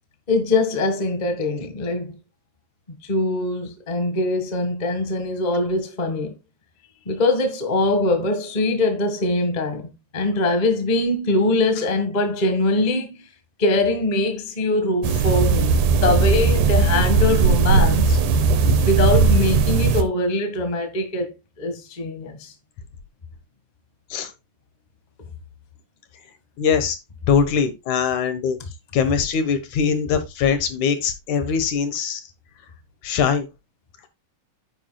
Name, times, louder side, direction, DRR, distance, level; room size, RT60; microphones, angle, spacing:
voice 1, 0.3-2.2 3.1-6.3 7.1-13.2 13.6-18.2 18.8-21.3 21.6-22.5, left 2 dB, 25° left, 0.9 m, -22 dB
sound 1, 15.0-20.0, right 4 dB, 75° right, 2.4 m, -18 dB
voice 2, 26.6-27.0 27.3-28.6 28.9-32.2 33.0-33.5, left 6 dB, 70° left, 2.6 m, -22 dB
10.0 x 9.2 x 2.3 m
omnidirectional pair, 3.7 m